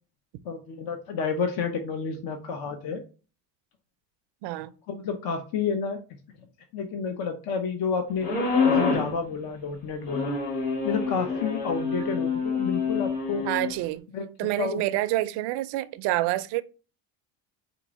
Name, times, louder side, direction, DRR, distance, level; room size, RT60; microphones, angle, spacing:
voice 1, 0.4-3.0 4.9-6.0 6.7-8.3 8.6-10.4 10.8-13.4 14.1-14.8, left 5 dB, 50° left, 0.8 m, -30 dB
voice 2, 4.4-4.7 13.4-14.1 14.4-16.6, right 16 dB, 60° right, 0.5 m, -27 dB
sound 1, 8.2-9.1 10.1-13.7, left 4 dB, 85° left, 2.2 m, -26 dB
4.5 x 2.6 x 4.0 m
supercardioid pair, 105°, 46 cm